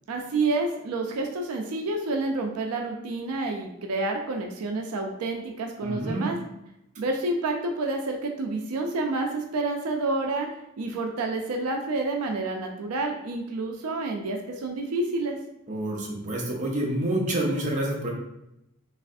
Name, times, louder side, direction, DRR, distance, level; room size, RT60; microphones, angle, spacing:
voice 1, 0.1-6.4 7.0-10.5 10.8-15.4, right 2 dB, 85° right, 2 dB, 0.4 m, -29 dB
voice 2, 5.8-6.3 15.7-18.1, right 1 dB, 35° right, -2 dB, 0.6 m, -28 dB
3.2 x 2.4 x 2.5 m, 0.86 s
head